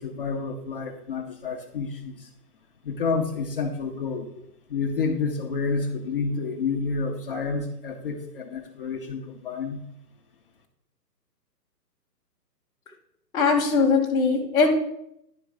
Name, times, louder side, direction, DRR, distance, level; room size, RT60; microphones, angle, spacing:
voice 1, 0.0-2.3 2.8-4.3 4.7-9.8, left 4 dB, 35° left, 2 dB, 0.8 m, -29 dB
voice 2, 13.3-14.7, left 4 dB, 10° left, -4 dB, 1.0 m, -20 dB
10.5 x 3.8 x 4.7 m, 0.78 s
figure-of-eight pair, 140°, 50 cm